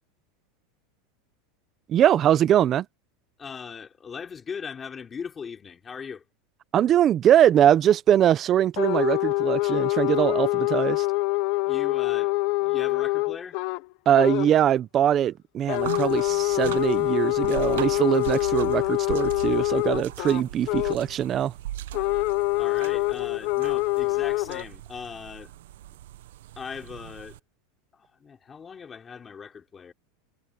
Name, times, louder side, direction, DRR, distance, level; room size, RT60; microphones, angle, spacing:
voice 1, 1.9-2.9 6.7-11.1 14.1-21.5, right 10 dB, 25° right, 0.7 m, -22 dB
voice 2, 3.4-6.2 11.6-13.6 22.6-25.5 26.6-27.4 27.9-29.9, left 6 dB, 15° left, 3.2 m, -39 dB
sound 1, 8.8-13.8 14.1-14.5 15.7-21.1 21.9-24.6, left 22 dB, 50° left, 0.7 m, -25 dB
sound 2, 15.7-27.4, right 13 dB, 85° right, 1.0 m, -39 dB
supercardioid pair, 160°, 0 cm